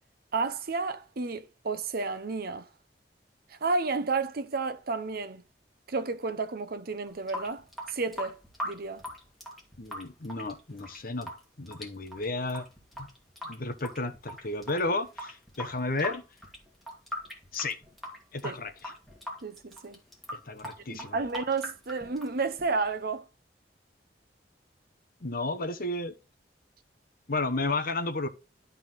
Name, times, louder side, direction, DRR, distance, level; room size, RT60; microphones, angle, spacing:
voice 1, 0.3-2.7 3.5-5.4 5.9-7.6 7.9-8.4 8.6-9.0 18.4-18.6 19.4-20.0 20.9-23.2, right 4 dB, 60° right, 0.7 m, -31 dB
Water tap faucet / Sink (filling or washing) / Drip, 7.1-23.0, equal, ahead, 2.4 m, -42 dB
voice 2, 9.8-11.3 11.6-12.6 13.0-13.1 13.4-16.2 17.5-17.8 18.3-18.9 20.3-21.2 25.2-26.1 27.3-28.3, left 2 dB, 55° left, 1.0 m, -32 dB
12.5 x 4.2 x 4.0 m
head